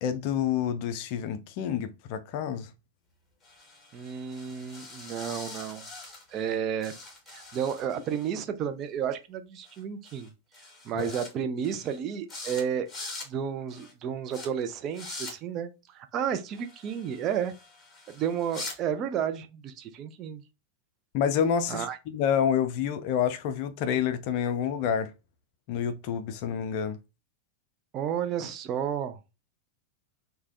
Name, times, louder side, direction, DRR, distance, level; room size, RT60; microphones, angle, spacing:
voice 1, 0.0-2.7 11.0-11.1 21.1-25.1 25.7-27.0, left 8 dB, 45° left, 0.4 m, -28 dB
sound 1, 3.4-6.5 6.8-8.3 9.6-9.8 10.0-10.3 10.5-11.3 11.6-12.0 12.3-12.6 12.9-13.3 13.7-13.9 14.3-14.5 14.9-15.3 16.5-18.8, left 3 dB, 10° left, 1.4 m, -43 dB
voice 2, 3.9-5.9 6.3-6.9 7.3-10.3 10.8-12.9 13.3-17.5 18.1-20.4 21.7-22.0 27.9-29.2, right 8 dB, 35° right, 0.4 m, -32 dB
3.2 x 2.2 x 2.5 m
figure-of-eight pair, 90°, 0 cm